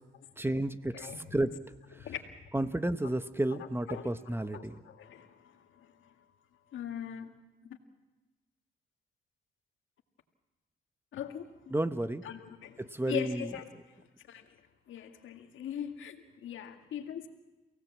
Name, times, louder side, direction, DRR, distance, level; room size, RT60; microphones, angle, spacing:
voice 1, 0.4-1.5 2.5-4.8 11.7-12.2 12.8-13.5, right 1 dB, 10° right, 11 dB, 1.1 m, -32 dB
voice 2, 2.0-2.5 3.5-6.3 6.7-7.3 7.6-7.8 11.1-11.7 12.2-13.6 14.3-14.6 14.9-17.3, left 9 dB, 80° left, 5 dB, 2.0 m, -41 dB
29.5 x 17.5 x 7.5 m, 1.1 s
cardioid pair, 70°, 20 cm